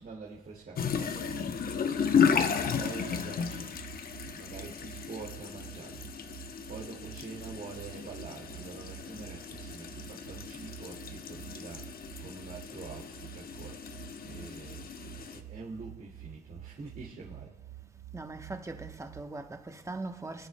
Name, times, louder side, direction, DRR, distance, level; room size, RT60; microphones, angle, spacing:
voice 1, 0.0-2.1 2.8-3.8 4.3-6.1 6.7-13.8 14.2-17.6, right 4 dB, 50° right, 2.2 m, -46 dB
sound 1, 0.8-15.4, left 7 dB, 50° left, 0.8 m, -34 dB
sound 2, 1.2-19.2, right 15 dB, 70° right, 0.4 m, -49 dB
voice 2, 18.1-20.5, right 2 dB, 15° right, 1.0 m, -40 dB
24.5 x 11.0 x 2.2 m
cardioid pair, 90°, 20 cm